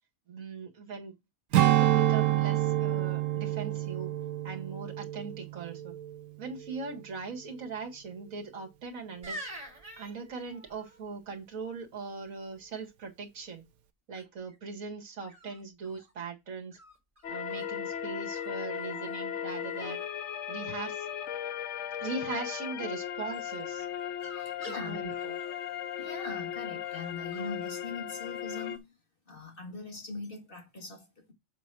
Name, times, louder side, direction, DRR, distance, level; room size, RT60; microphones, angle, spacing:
voice 1, 0.3-1.1 1.6-4.1 4.4-5.9 6.4-9.4 10.0-13.6 14.1-16.8 17.3-20.1 20.5-21.1 22.0-23.9 24.7-25.4, right 4 dB, 70° right, 2.2 m, -40 dB
Strum, 1.5-6.2 6.6-6.8, right 14 dB, 85° right, 1.2 m, -27 dB
sound 1, 9.2-11.0 14.1-14.5 15.3-16.1 16.7-17.6 18.3-18.5 18.7-19.2 19.5-20.1 23.8-26.3 26.8-27.7 28.6-28.8, right 1 dB, 25° right, 2.7 m, -48 dB
sound 2, 17.2-28.8, left 9 dB, 60° left, 0.9 m, -37 dB
voice 2, 24.3-25.1 26.0-28.9 29.3-31.3, left 3 dB, 40° left, 2.1 m, -41 dB
7.1 x 4.1 x 6.1 m
omnidirectional pair, 1.5 m